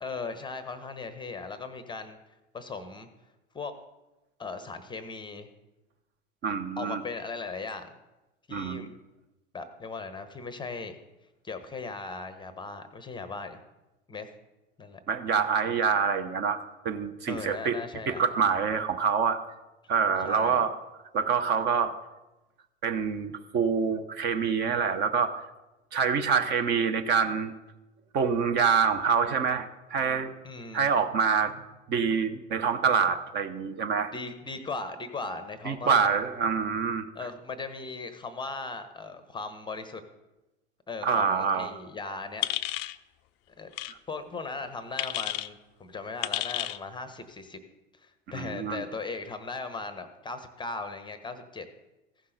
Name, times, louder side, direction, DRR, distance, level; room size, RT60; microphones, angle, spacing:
voice 1, 0.0-2.2 2.5-3.1 3.5-3.7 4.4-5.5 6.8-7.9 8.5-8.9 9.5-11.0 11.4-13.6 14.1-14.3 14.8-15.0 17.3-18.2 20.2-20.6 30.4-30.9 34.1-36.1 37.1-40.0 40.9-42.4 43.6-43.7 44.1-47.6 48.0-51.6, left 4 dB, 15° left, 10 dB, 0.8 m, -38 dB
voice 2, 6.4-7.0 8.5-8.9 15.1-17.8 18.1-19.4 19.9-20.7 21.1-22.0 22.8-25.3 25.9-27.5 28.1-30.3 30.7-31.5 31.9-34.1 35.7-37.1 41.0-41.7 43.9-44.0 48.3-48.8, right 6 dB, 30° right, 8 dB, 0.7 m, -26 dB
sound 1, 42.4-43.0 43.7-43.9 45.0-45.5 46.2-46.8, left 15 dB, 35° left, 0.4 m, -31 dB
15.5 x 5.6 x 3.9 m, 1.0 s
figure-of-eight pair, 85°, 35 cm